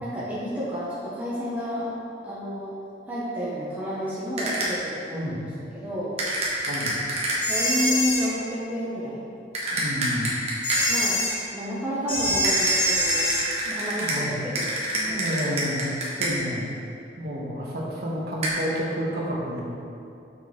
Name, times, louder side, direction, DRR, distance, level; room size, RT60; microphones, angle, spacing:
voice 1, 0.0-1.9 2.2-2.7 3.1-5.3 5.7-6.2 7.4-9.3 10.9-11.2 11.5-13.3 13.7-14.7 15.1-15.3, equal, 10° right, -9 dB, 0.9 m, -30 dB
sound 1, 4.4-4.9 6.2-7.6 9.5-11.1 12.4-16.6 18.4-18.5, right 1 dB, 35° right, 1.2 m, -28 dB
voice 2, 6.7-7.0 9.8-10.3 13.7-13.8 14.0-14.3 14.9-15.8 16.2-16.7 17.2-19.6, equal, 55° right, -3 dB, 1.2 m, -30 dB
sound 2, 7.4-8.3 10.6-11.4 12.1-13.5, equal, 30° left, 1.4 m, -24 dB
6.5 x 5.8 x 3.6 m, 2.6 s
head